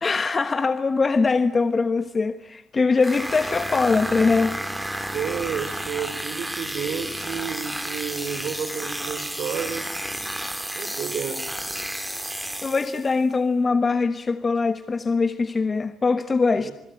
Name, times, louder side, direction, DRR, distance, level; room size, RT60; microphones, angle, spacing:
voice 1, 0.0-4.6 12.6-16.7, left 4 dB, 35° left, 1.2 m, -22 dB
sound 1, 3.0-13.2, right 1 dB, 5° right, 2.9 m, -32 dB
voice 2, 5.1-9.9 10.7-11.5 16.6-16.7, right 7 dB, 70° right, 3.6 m, -31 dB
27.0 x 21.0 x 9.3 m
cardioid pair, 90°, 0 cm